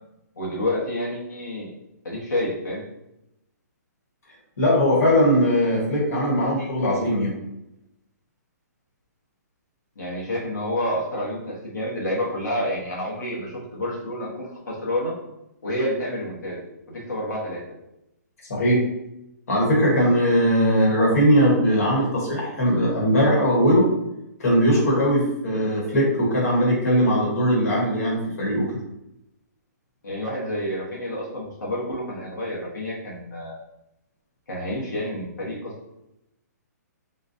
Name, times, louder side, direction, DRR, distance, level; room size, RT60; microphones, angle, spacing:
voice 1, 0.4-1.7 2.0-2.8 10.0-15.1 15.6-16.6 16.9-17.6 30.0-33.7 34.5-35.7, left 1 dB, 85° left, -4 dB, 1.1 m, -29 dB
voice 2, 4.6-7.3 18.5-18.8 19.5-23.9 24.4-28.8, equal, 55° left, -3 dB, 1.3 m, -20 dB
3.9 x 2.2 x 2.6 m, 0.86 s
hypercardioid pair, 180°, 10 cm